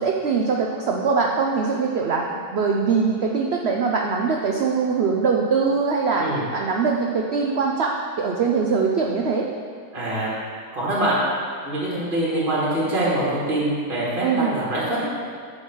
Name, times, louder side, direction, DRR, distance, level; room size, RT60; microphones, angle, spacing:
voice 1, 0.0-9.5 14.2-14.5, right 5 dB, 80° right, 0 dB, 0.5 m, -22 dB
voice 2, 9.9-10.4 10.7-11.2 11.6-15.2, right 1 dB, 30° right, -7 dB, 1.7 m, -24 dB
8.6 x 4.0 x 6.1 m, 2.1 s
omnidirectional pair, 1.8 m